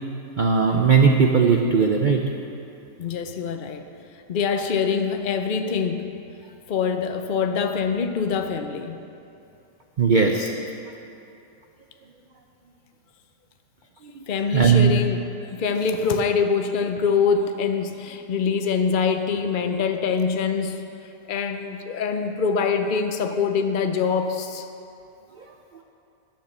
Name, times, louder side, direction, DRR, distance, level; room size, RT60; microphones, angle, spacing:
voice 1, 0.4-2.2 10.0-10.5 14.5-14.9, right 5 dB, 55° right, 2 dB, 0.5 m, -18 dB
voice 2, 3.0-3.9 4.3-6.1 6.7-9.0 14.3-20.8 21.3-24.7, left 5 dB, 75° left, 7 dB, 0.4 m, -24 dB
10.5 x 8.8 x 6.7 m, 2.7 s
omnidirectional pair, 1.7 m